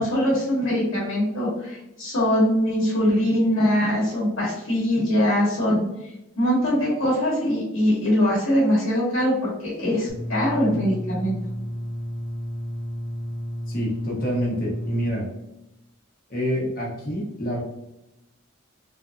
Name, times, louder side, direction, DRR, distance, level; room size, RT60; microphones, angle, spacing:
voice 1, 0.0-5.8 6.4-11.4, equal, 70° left, -6 dB, 1.2 m, -22 dB
sound 1, 10.1-15.1, equal, 10° right, 0.5 m, -32 dB
voice 2, 13.7-15.3 16.3-17.6, equal, 45° left, -3 dB, 1.0 m, -27 dB
3.3 x 2.5 x 2.4 m, 0.91 s
head